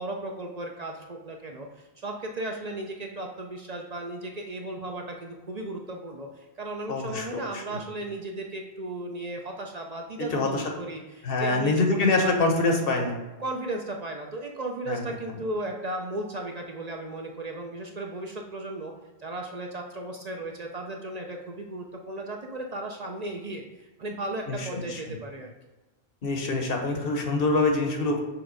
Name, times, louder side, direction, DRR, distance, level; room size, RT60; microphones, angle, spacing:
voice 1, 0.0-12.8 13.4-18.9 19.2-25.5, right 1 dB, 45° right, 2 dB, 0.7 m, -35 dB
voice 2, 6.9-7.3 7.5-7.8 10.2-10.6 11.2-13.1 14.9-15.0 24.5-25.0 26.2-28.2, left 3 dB, 65° left, 2 dB, 1.2 m, -25 dB
6.1 x 3.4 x 5.1 m, 1.1 s
omnidirectional pair, 1.1 m